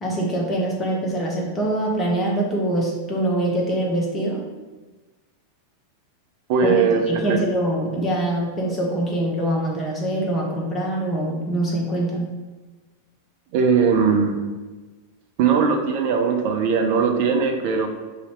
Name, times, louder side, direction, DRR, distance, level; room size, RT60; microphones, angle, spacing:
voice 1, 0.0-4.4 6.6-12.3, right 1 dB, 15° left, -3 dB, 1.0 m, -24 dB
voice 2, 6.5-7.4 13.5-14.3 15.4-17.9, right 5 dB, 45° right, 4 dB, 0.5 m, -19 dB
2.9 x 2.7 x 4.4 m, 1.3 s
figure-of-eight pair, 90°, 0 cm